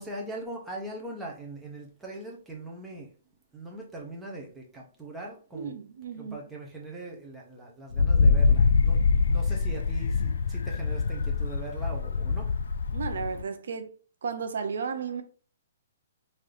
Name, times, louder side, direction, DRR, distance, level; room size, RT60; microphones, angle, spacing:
voice 1, 0.0-3.1 3.5-5.8 6.2-9.0 9.3-12.5, right 2 dB, 5° right, 0.7 m, -40 dB
voice 2, 5.5-6.4 12.9-13.9 14.2-15.2, right 5 dB, 75° right, 0.6 m, -33 dB
Wind, 7.9-13.4, left 4 dB, 85° left, 0.3 m, -24 dB
3.8 x 2.7 x 3.3 m
hypercardioid pair, 165°, 0 cm